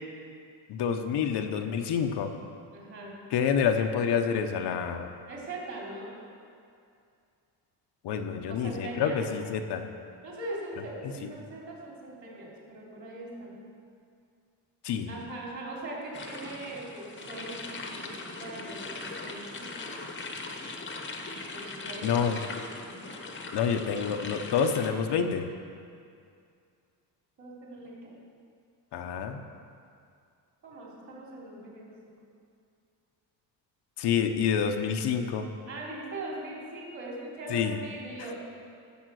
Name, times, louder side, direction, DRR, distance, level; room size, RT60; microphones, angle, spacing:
voice 1, 0.7-2.4 3.3-5.1 8.0-9.9 11.2-11.3 14.8-15.1 22.0-22.4 23.5-25.5 28.9-29.4 34.0-35.5 37.5-37.8, left 7 dB, 65° left, 5 dB, 0.9 m, -28 dB
voice 2, 2.7-3.1 5.3-6.2 8.5-9.2 10.2-13.5 15.1-17.7 18.0-19.7 21.5-22.2 23.0-23.2 27.4-28.2 30.6-32.1 35.7-38.3, right 2 dB, 40° right, -4 dB, 3.5 m, -40 dB
sound 1, 16.1-24.9, left 3 dB, 25° left, 1.0 m, -40 dB
14.0 x 7.3 x 6.3 m, 2.4 s
cardioid pair, 160°, 44 cm